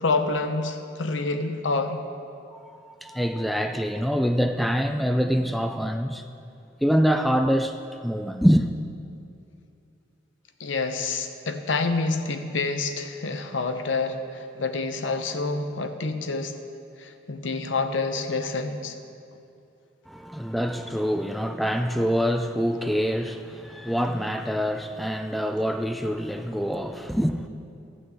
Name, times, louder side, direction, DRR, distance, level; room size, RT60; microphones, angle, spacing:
voice 1, 0.0-2.0 10.6-16.5 17.0-18.9, left 3 dB, 80° left, 0.8 m, -27 dB
voice 2, 2.5-6.3 6.8-8.7 20.1-27.5, equal, ahead, 0.3 m, -25 dB
13.5 x 6.3 x 7.7 m
head